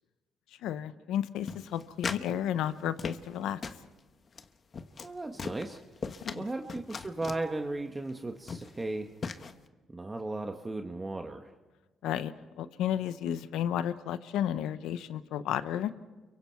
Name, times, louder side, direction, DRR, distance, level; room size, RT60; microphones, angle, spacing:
voice 1, 0.6-3.6 6.2-6.4 12.0-15.9, left 10 dB, 90° left, 13 dB, 0.9 m, -32 dB
sound 1, 1.5-2.3 2.6-3.4 3.6-3.8 4.3-4.4 4.7-5.1 5.4-6.4 6.7-7.4 8.1-8.2 8.5-8.8 9.2-9.5, left 5 dB, 45° left, 1.2 m, -38 dB
voice 2, 5.0-5.8 6.3-9.1 9.9-11.5, right 2 dB, 20° right, 4 dB, 1.3 m, -36 dB
29.5 x 23.5 x 4.6 m, 1.2 s
cardioid pair, 90°, 0 cm